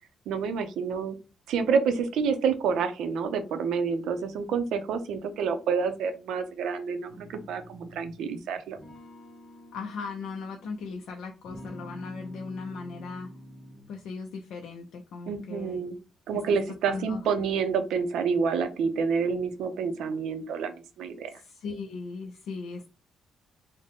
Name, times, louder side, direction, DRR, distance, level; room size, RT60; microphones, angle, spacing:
voice 1, 0.3-1.2 1.5-8.8 15.3-16.0 16.3-21.3, right 6 dB, 80° right, 9 dB, 0.6 m, -28 dB
sound 1, 7.1-8.2 8.7-11.0 11.4-14.0, equal, 50° left, 1.4 m, -47 dB
voice 2, 9.7-13.3 13.9-15.8 16.9-17.2 21.3-22.9, left 4 dB, 75° left, 3 dB, 0.5 m, -38 dB
3.7 x 2.1 x 3.6 m, 0.32 s
cardioid pair, 160°, 0 cm